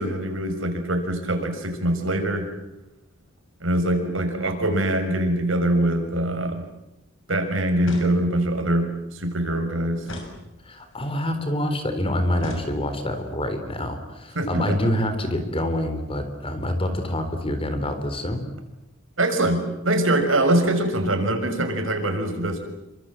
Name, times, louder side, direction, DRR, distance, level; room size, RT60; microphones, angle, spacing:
voice 1, 0.0-2.5 3.6-6.6 7.3-10.0 14.3-14.8 19.2-22.6, right 1 dB, 75° right, 5 dB, 6.4 m, -23 dB
sound 1, 7.8-8.6 10.0-11.0 12.4-13.2, left 1 dB, 70° left, 7.0 m, -36 dB
voice 2, 10.7-18.4, left 1 dB, 25° left, 8 dB, 4.0 m, -26 dB
29.0 x 26.0 x 7.7 m, 0.93 s
head